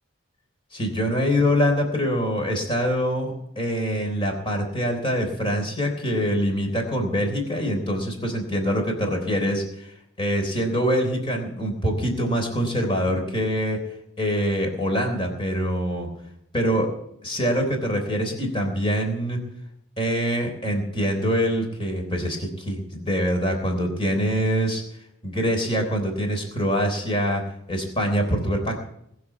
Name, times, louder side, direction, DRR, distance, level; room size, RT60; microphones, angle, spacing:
voice 1, 0.7-13.8 14.2-16.1 16.5-16.9 17.2-19.4 20.0-24.8 25.2-27.4 27.7-28.8, equal, 25° left, 3 dB, 3.5 m, -24 dB
20.5 x 6.9 x 8.3 m, 0.76 s
head